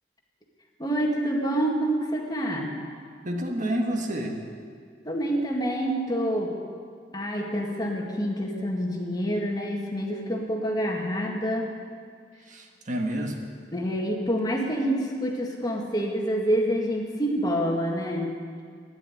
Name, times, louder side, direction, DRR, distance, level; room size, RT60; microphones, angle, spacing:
voice 1, 0.8-2.8 5.0-6.6 7.1-11.7 13.7-18.4, equal, 20° left, 0 dB, 2.0 m, -27 dB
voice 2, 3.2-4.4 12.4-13.4, right 1 dB, 45° right, 2 dB, 1.6 m, -29 dB
13.0 x 10.5 x 9.6 m, 2.1 s
head